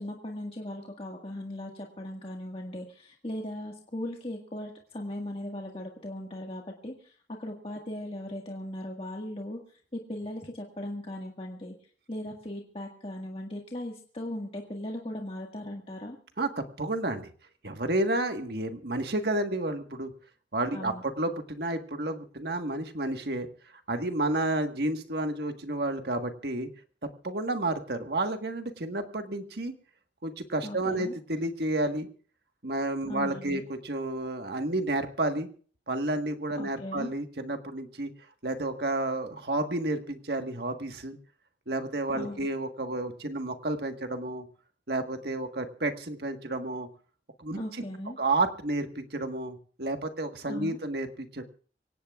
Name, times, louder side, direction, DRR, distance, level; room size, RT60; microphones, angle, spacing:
voice 1, 0.0-9.6 9.9-11.7 12.1-16.2 20.7-21.0 30.6-31.1 33.1-33.6 36.5-37.1 42.1-42.5 47.5-48.2 50.5-50.8, left 1 dB, 30° left, 0 dB, 1.8 m, -38 dB
voice 2, 16.4-17.3 17.6-20.1 20.5-23.5 23.9-26.7 27.0-29.7 30.2-32.1 32.6-35.5 35.9-38.1 38.4-41.2 41.7-44.5 44.9-46.9 47.4-47.6 48.2-51.4, right 2 dB, 60° right, 6 dB, 1.5 m, -31 dB
25.0 x 17.5 x 2.4 m, 0.43 s
head